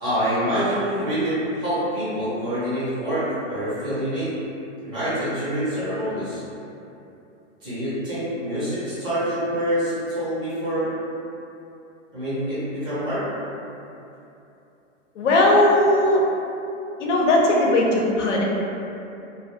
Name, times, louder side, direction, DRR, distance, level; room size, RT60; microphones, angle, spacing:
voice 1, 0.0-4.4 4.8-6.4 7.6-10.9 12.1-13.3, equal, 15° right, -12 dB, 0.6 m, -26 dB
voice 2, 15.2-16.2 17.0-18.4, left 1 dB, 65° left, -3 dB, 0.6 m, -18 dB
2.2 x 2.1 x 2.8 m, 2.8 s
hypercardioid pair, 150°, 38 cm